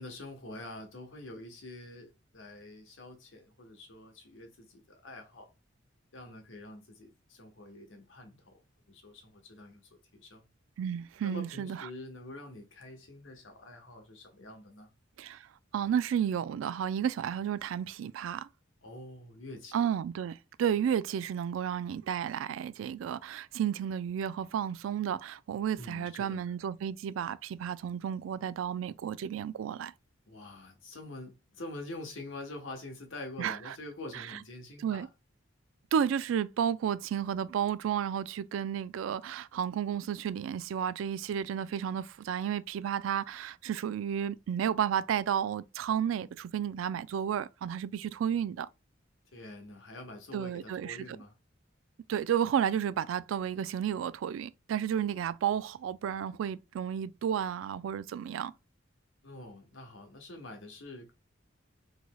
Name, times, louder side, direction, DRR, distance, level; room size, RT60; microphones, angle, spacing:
voice 1, 0.0-5.5 6.1-10.5 11.2-14.9 18.8-19.9 25.8-26.5 30.3-35.1 49.3-51.4 59.2-61.1, left 1 dB, 80° left, 1.1 m, -46 dB
voice 2, 10.8-11.8 15.2-15.4 15.7-18.5 19.7-29.9 33.4-33.6 34.8-35.1 35.9-48.7 50.3-51.0 52.1-58.5, right 8 dB, 85° right, 0.3 m, -32 dB
3.9 x 3.1 x 2.2 m
head